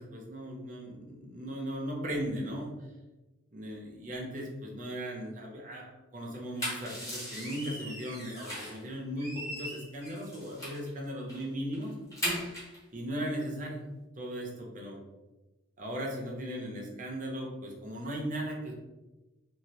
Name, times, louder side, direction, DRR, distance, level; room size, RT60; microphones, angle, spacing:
voice 1, 0.0-2.7 3.5-12.0 12.9-13.9 14.2-15.0 15.8-18.7, equal, 40° right, -1 dB, 0.6 m, -37 dB
sound 1, 6.3-8.8 9.2-10.9 11.3-11.4 11.7-12.8, equal, 15° left, 0.8 m, -38 dB
2.7 x 2.4 x 3.0 m, 1.1 s
head